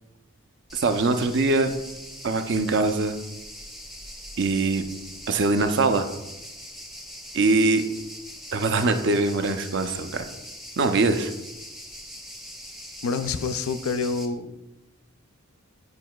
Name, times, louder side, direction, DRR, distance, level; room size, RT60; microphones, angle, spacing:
sound 1, 0.7-14.3, equal, ahead, 0.5 m, -42 dB
voice 1, 0.7-1.7 2.2-3.2 4.4-4.8 5.3-6.1 7.3-7.8 8.5-10.3 10.8-11.3, right 3 dB, 55° right, 8 dB, 0.5 m, -22 dB
voice 2, 13.0-14.6, left 4 dB, 90° left, 11 dB, 0.4 m, -27 dB
9.5 x 4.6 x 2.3 m, 0.98 s
head